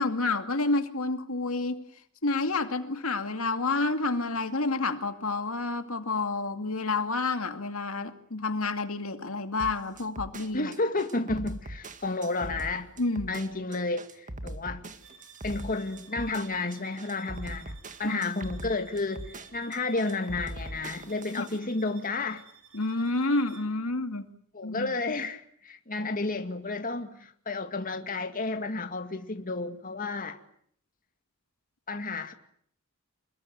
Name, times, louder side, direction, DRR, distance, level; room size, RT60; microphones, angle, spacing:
voice 1, 0.0-1.8 2.2-10.7 13.0-13.3 18.0-18.3 21.4-21.5 22.7-24.3 24.6-24.9, left 3 dB, 70° left, 2.4 m, -29 dB
sound 1, 9.6-21.6, right 1 dB, 35° right, 2.0 m, -41 dB
voice 2, 10.5-12.9 13.3-14.9 15.4-22.4 24.5-30.4 31.9-32.3, left 3 dB, 40° left, 2.2 m, -31 dB
sound 2, 15.0-23.8, right 7 dB, 65° right, 7.7 m, -54 dB
27.5 x 21.5 x 9.3 m
head